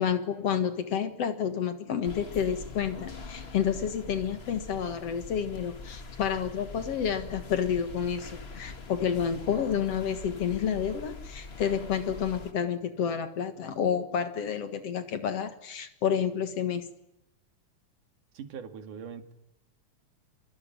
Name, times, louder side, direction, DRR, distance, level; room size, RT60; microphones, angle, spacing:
voice 1, 0.0-16.9, left 8 dB, 55° left, 10 dB, 2.5 m, -30 dB
sound 1, 2.0-12.5, left 4 dB, 30° left, 1.2 m, -43 dB
voice 2, 18.3-19.3, right 7 dB, 90° right, 8 dB, 3.7 m, -41 dB
25.0 x 22.5 x 9.7 m, 0.84 s
omnidirectional pair, 3.5 m